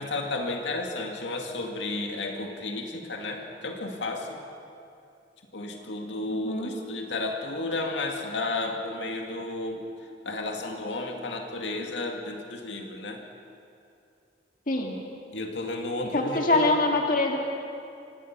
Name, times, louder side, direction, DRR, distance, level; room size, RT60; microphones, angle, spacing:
voice 1, 0.0-4.4 5.5-9.8 10.3-13.2 15.3-16.7, left 2 dB, 85° left, 2 dB, 2.2 m, -32 dB
voice 2, 6.3-6.7 14.7-14.9 16.1-17.4, left 2 dB, 50° left, 1 dB, 2.0 m, -24 dB
25.0 x 17.5 x 6.1 m, 2.6 s
head